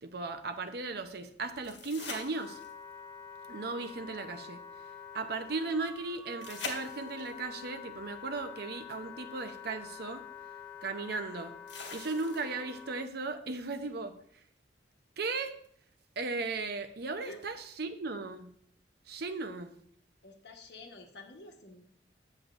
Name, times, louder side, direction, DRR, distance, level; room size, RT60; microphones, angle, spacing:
voice 1, 0.0-2.6 3.5-4.6 5.1-10.2 10.8-11.6 11.9-14.2 15.2-15.5 16.2-18.5 19.1-19.7, right 3 dB, 65° right, 9 dB, 0.7 m, -36 dB
sound 1, 1.6-2.9 6.4-7.4 9.3-9.4 11.7-12.7 15.6-15.7, left 4 dB, 90° left, 1.6 m, -43 dB
Wind instrument woodwind instrument, 1.6-13.1, left 6 dB, 10° left, 0.7 m, -47 dB
voice 2, 20.2-21.9, left 2 dB, 70° left, 2 dB, 1.2 m, -49 dB
8.6 x 8.0 x 2.5 m, 0.63 s
head